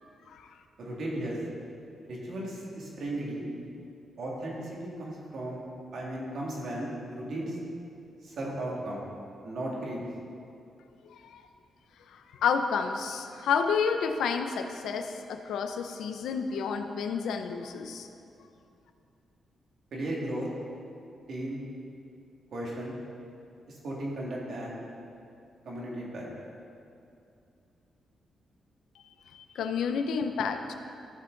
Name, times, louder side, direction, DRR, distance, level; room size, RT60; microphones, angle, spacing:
voice 1, 0.8-1.4 2.0-3.5 4.2-5.6 5.9-7.6 8.2-9.0 9.4-10.0 19.9-20.5 21.3-21.6 22.5-23.0 23.8-24.8 25.6-26.2, right 1 dB, 55° right, -4 dB, 2.2 m, -35 dB
voice 2, 11.0-11.4 12.1-18.1 29.3-30.7, left 6 dB, 90° left, 7 dB, 0.6 m, -30 dB
14.5 x 5.8 x 3.9 m, 2.5 s
wide cardioid pair, 150°, 0 cm